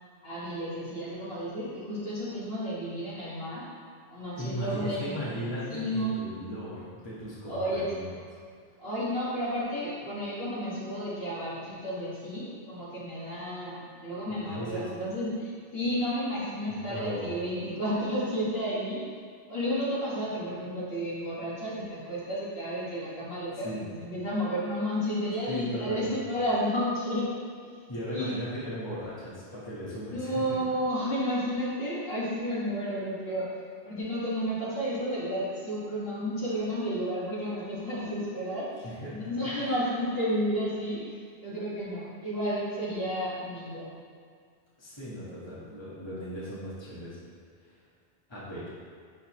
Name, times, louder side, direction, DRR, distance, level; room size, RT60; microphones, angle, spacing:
voice 1, 0.2-3.7 4.1-5.2 5.7-6.3 7.5-7.9 8.8-19.0 19.5-27.3 28.1-28.4 30.1-33.5 33.8-41.2 41.4-43.9, equal, 60° left, -9 dB, 2.0 m, -32 dB
voice 2, 4.3-8.1 14.3-14.8 16.7-17.3 23.6-23.8 25.5-26.1 27.9-30.3 38.8-39.3 39.6-39.7 44.8-47.2 48.3-48.6, equal, 25° left, -9 dB, 1.5 m, -37 dB
11.0 x 4.0 x 3.0 m, 2.1 s
omnidirectional pair, 1.1 m